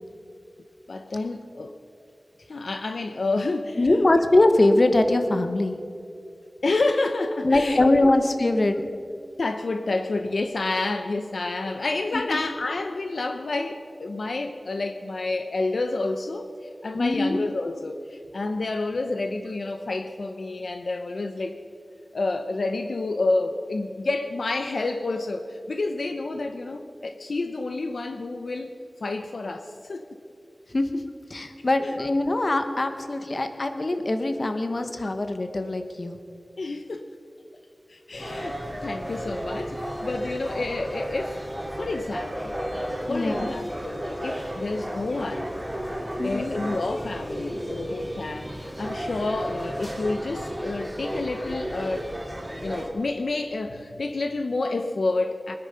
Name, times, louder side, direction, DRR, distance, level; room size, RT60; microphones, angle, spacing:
voice 1, 0.9-1.8 2.5-3.9 6.6-8.1 9.4-21.6 22.1-28.7 29.0-30.2 31.8-32.0 35.0-35.1 36.6-37.1 37.9-41.4 41.8-45.5 46.2-52.1 52.6-55.5, left 2 dB, 85° left, 6 dB, 0.7 m, -29 dB
voice 2, 3.8-5.8 7.4-8.8 12.1-12.4 16.9-17.4 30.7-31.0 31.3-36.2 43.1-43.5 46.2-46.5, left 2 dB, 50° left, 7 dB, 1.2 m, -22 dB
sound 1, 38.1-52.9, equal, 10° right, 2.8 m, -33 dB
21.5 x 9.8 x 5.6 m, 2.4 s
wide cardioid pair, 75°, 0 cm